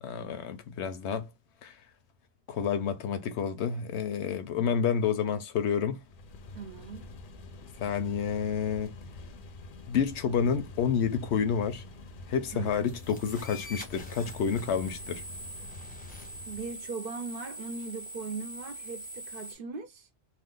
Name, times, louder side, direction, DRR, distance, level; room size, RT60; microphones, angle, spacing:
voice 1, 0.0-1.2 1.6-1.7 2.5-6.0 7.8-8.9 9.9-11.8 12.3-15.2, left 7 dB, 80° left, 0.9 m, -29 dB
sound 1, 6.0-16.8, left 2 dB, 60° left, 0.7 m, -46 dB
voice 2, 6.5-7.1 12.5-12.7 16.5-20.1, right 5 dB, 60° right, 0.7 m, -39 dB
sound 2, 12.8-19.5, equal, 10° left, 0.6 m, -43 dB
2.5 x 2.4 x 3.6 m
omnidirectional pair, 1.2 m